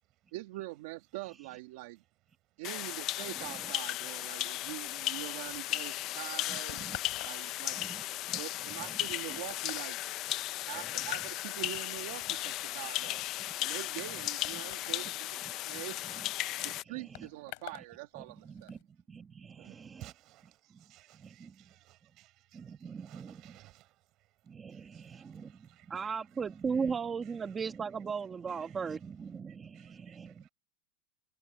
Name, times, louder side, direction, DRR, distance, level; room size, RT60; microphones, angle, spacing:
voice 1, 0.3-2.0 2.6-6.9 7.2-7.8 8.4-10.0 10.6-13.2 13.6-15.4 15.7-16.2 16.6-18.7, right 18 dB, 60° right, 1.9 m, -44 dB
sound 1, 2.6-16.8, left 16 dB, 35° left, 0.5 m, -36 dB
voice 2, 3.4-3.7 6.8-7.0 7.7-8.4 8.9-9.0 10.7-10.9 15.7-15.8 16.2-16.3 16.6-17.3 18.2-18.8 19.1-20.1 21.2-21.5 22.5-23.6 24.5-25.5 25.9-30.5, right 5 dB, 15° right, 1.3 m, -39 dB
sound 2, 4.6-17.9 18.2-18.8, left 29 dB, 55° left, 4.0 m, -51 dB
voice 3, 19.6-23.9 24.7-26.1 26.7-26.9 28.6-28.7 29.7-30.5, right 17 dB, 35° right, 6.3 m, -57 dB
supercardioid pair, 165°, 0 cm